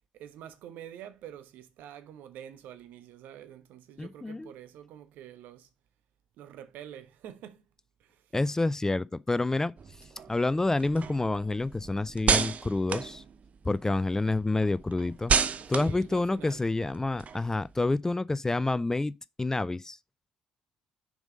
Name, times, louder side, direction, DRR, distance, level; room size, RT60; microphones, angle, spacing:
voice 1, 0.1-5.7 6.4-7.6 8.0-8.3 15.7-16.6, right 10 dB, 65° right, 1.1 m, -47 dB
voice 2, 4.0-4.5 8.3-9.7 10.0-13.2 13.6-15.3 15.7-20.0, left 2 dB, 15° left, 0.4 m, -28 dB
sound 1, 9.8-13.9 14.3-17.8, right 6 dB, 45° right, 0.7 m, -32 dB
6.1 x 5.4 x 5.0 m
figure-of-eight pair, 45°, 3 cm